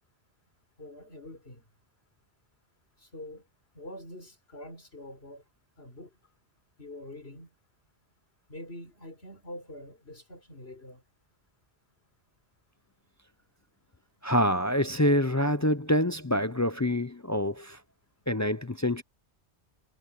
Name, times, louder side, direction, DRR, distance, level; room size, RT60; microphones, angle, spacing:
voice 1, 0.8-1.6 3.0-3.4 3.7-5.4 5.8-6.1 6.8-7.5 8.5-11.0, left 1 dB, 65° left, 5.1 m, -45 dB
voice 2, 14.2-17.8 18.3-19.0, left 1 dB, 20° left, 0.4 m, -26 dB
omnidirectional pair, 1.2 m